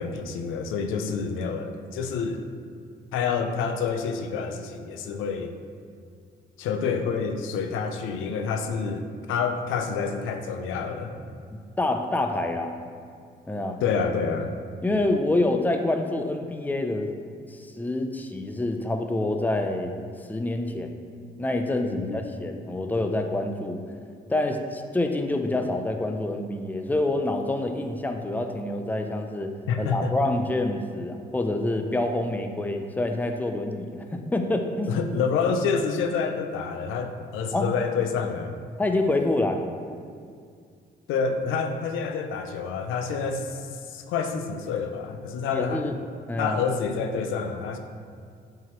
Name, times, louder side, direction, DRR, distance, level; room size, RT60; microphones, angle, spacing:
voice 1, 0.0-2.4 3.1-5.5 6.6-11.1 13.8-14.5 21.8-22.3 29.7-30.1 34.9-38.6 41.1-43.6 43.8-45.9 46.4-47.8, left 5 dB, 90° left, 6 dB, 0.6 m, -28 dB
voice 2, 11.8-12.7 13.5-13.8 14.8-17.1 17.5-19.9 20.3-21.0 21.4-23.8 24.3-34.9 37.5-37.7 38.8-39.6 45.5-46.0 46.3-46.6, left 2 dB, 10° left, 5 dB, 0.6 m, -27 dB
8.9 x 4.7 x 3.1 m, 2.2 s
cardioid pair, 90°, 20 cm